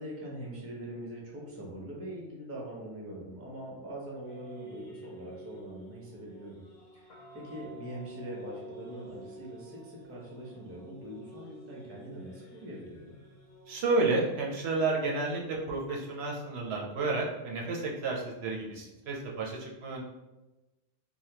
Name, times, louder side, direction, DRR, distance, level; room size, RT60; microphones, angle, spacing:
voice 1, 0.0-6.6 6.9-13.2, right 1 dB, 15° right, -4 dB, 0.5 m, -43 dB
sound 1, 4.2-14.1, right 2 dB, 65° left, 0.9 m, -49 dB
voice 2, 13.7-20.0, right 3 dB, 70° right, -2 dB, 0.8 m, -31 dB
3.4 x 2.1 x 2.8 m, 1.1 s
omnidirectional pair, 1.2 m